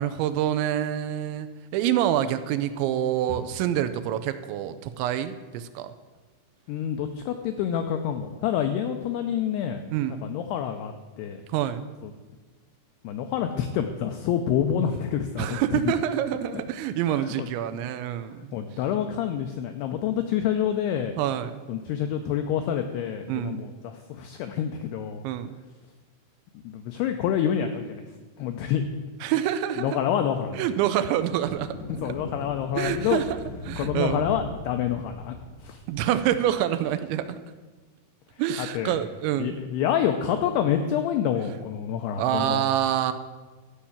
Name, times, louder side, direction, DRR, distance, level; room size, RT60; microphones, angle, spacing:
voice 1, 0.0-5.9 9.9-10.2 11.5-11.8 15.4-18.6 21.2-21.6 23.3-23.6 25.2-25.6 29.2-30.0 30.5-31.8 32.8-33.4 33.7-34.3 35.9-37.4 38.4-39.6 42.2-43.1, right 11 dB, 80° right, 10 dB, 2.8 m, -26 dB
voice 2, 6.7-9.8 10.2-11.4 12.0-12.1 13.0-15.8 17.1-17.5 18.5-21.1 21.7-25.2 26.6-28.0 28.4-28.8 29.8-30.6 32.0-33.2 33.8-35.4 35.6-35.8 38.6-39.0 39.4-42.6, left 9 dB, 90° left, 6 dB, 2.3 m, -27 dB
sound 1, 31.2-36.8, left 1 dB, 55° left, 2.8 m, -40 dB
13.5 x 5.7 x 8.6 m, 1.4 s
omnidirectional pair, 5.5 m